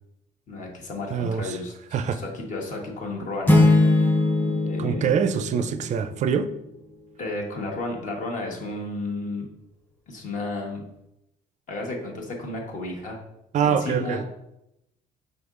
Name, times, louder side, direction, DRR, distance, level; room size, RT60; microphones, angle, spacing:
voice 1, 0.5-3.7 4.6-5.1 7.2-9.5 10.1-10.8 11.7-13.2 13.6-14.2, left 2 dB, 50° left, 0 dB, 1.1 m, -33 dB
voice 2, 1.1-1.6 1.9-2.2 4.5-6.5 13.5-14.2, right 7 dB, 45° right, 11 dB, 0.4 m, -25 dB
sound 1, 3.5-6.3, left 2 dB, 10° left, 0.7 m, -21 dB
5.2 x 3.8 x 2.4 m, 0.85 s
cardioid pair, 110°, 17 cm